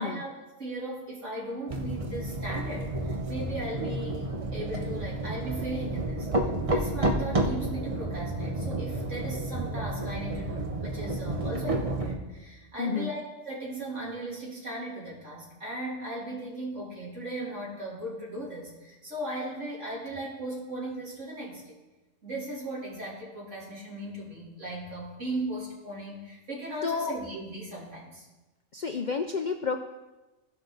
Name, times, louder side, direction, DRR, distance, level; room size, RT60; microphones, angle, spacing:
voice 1, 0.0-21.7 22.2-28.3, right 1 dB, 70° right, -5 dB, 3.4 m, -37 dB
sound 1, 1.7-12.2, right 1 dB, 30° right, 0.9 m, -31 dB
voice 2, 12.8-13.1 26.8-27.2 28.7-29.8, left 5 dB, 55° left, 6 dB, 0.5 m, -30 dB
17.0 x 5.9 x 3.9 m, 1.1 s
omnidirectional pair, 1.3 m